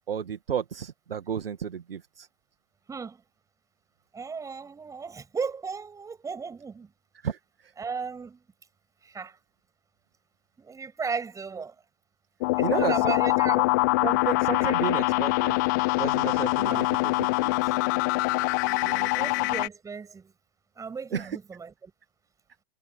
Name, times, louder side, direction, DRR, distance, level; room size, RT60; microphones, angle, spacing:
voice 1, 0.1-2.3 7.2-7.7 12.6-13.2 13.6-13.7 14.0-15.6 16.0-17.7 18.8-19.3 21.1-21.4, right 8 dB, 60° right, 2.2 m, -33 dB
voice 2, 2.9-3.2 4.1-6.9 7.8-8.4 9.0-9.4 10.6-11.8 12.6-13.6 14.7-14.9 16.6-16.8 18.6-18.9 19.1-20.3 20.8-21.9, right 5 dB, 10° right, 7.2 m, -35 dB
sound 1, 12.4-19.7, left 24 dB, 20° left, 0.4 m, -24 dB
figure-of-eight pair, 115°, 32 cm